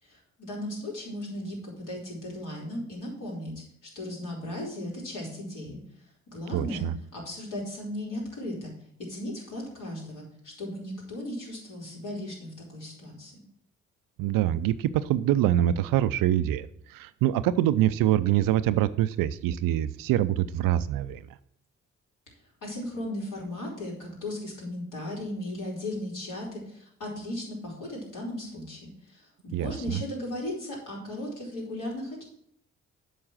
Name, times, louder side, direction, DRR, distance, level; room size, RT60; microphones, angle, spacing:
voice 1, 0.0-3.5 3.9-5.8 6.3-6.9 7.1-8.7 9.1-13.4 22.6-32.2, left 1 dB, 60° left, -3 dB, 4.7 m, -36 dB
voice 2, 6.5-6.9 14.2-21.2 29.5-30.0, right 12 dB, 70° right, 15 dB, 0.6 m, -25 dB
8.0 x 5.4 x 7.3 m, 0.67 s
hypercardioid pair, 45°, 35 cm